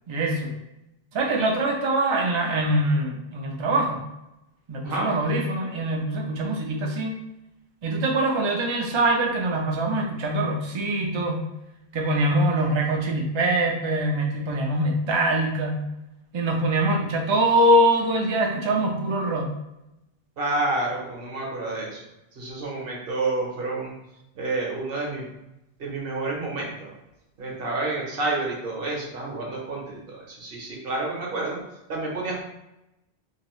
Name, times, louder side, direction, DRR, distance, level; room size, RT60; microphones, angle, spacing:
voice 1, 0.1-0.6 1.1-4.0 4.7-7.1 7.8-11.4 11.9-15.8 16.3-19.5 27.5-27.6, right 1 dB, 45° right, 1 dB, 0.3 m, -23 dB
voice 2, 20.4-22.0 22.3-23.9 24.3-25.2 25.8-26.9 27.4-31.6 31.9-32.4, right 2 dB, 65° right, -2 dB, 1.0 m, -29 dB
2.8 x 2.6 x 3.0 m, 0.90 s
omnidirectional pair, 1.1 m